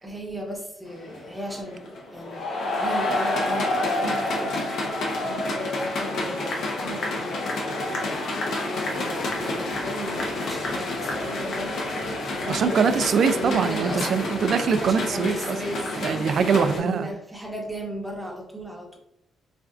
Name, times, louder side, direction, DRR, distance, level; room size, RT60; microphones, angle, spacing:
voice 1, 0.0-4.6 5.2-7.4 8.6-11.8 12.3-14.3 14.8-16.0 16.5-19.0, right 1 dB, 5° right, -1 dB, 1.0 m, -35 dB
sound 1, 0.9-16.8, left 2 dB, 70° left, 0.8 m, -29 dB
voice 2, 12.5-15.6 16.0-17.1, right 6 dB, 55° right, 10 dB, 0.3 m, -23 dB
4.2 x 2.4 x 2.4 m, 0.82 s
cardioid pair, 90°, 0 cm